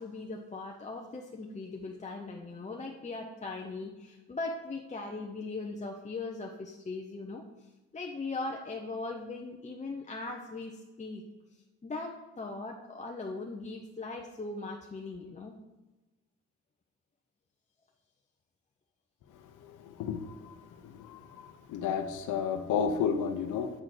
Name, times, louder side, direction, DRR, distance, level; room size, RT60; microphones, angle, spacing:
voice 1, 0.0-11.2 11.8-15.6, left 3 dB, 25° left, 1 dB, 0.8 m, -39 dB
voice 2, 19.8-20.5 21.0-23.7, left 7 dB, 80° left, 6 dB, 0.8 m, -32 dB
7.5 x 3.8 x 6.5 m, 1.1 s
cardioid pair, 90°, 30 cm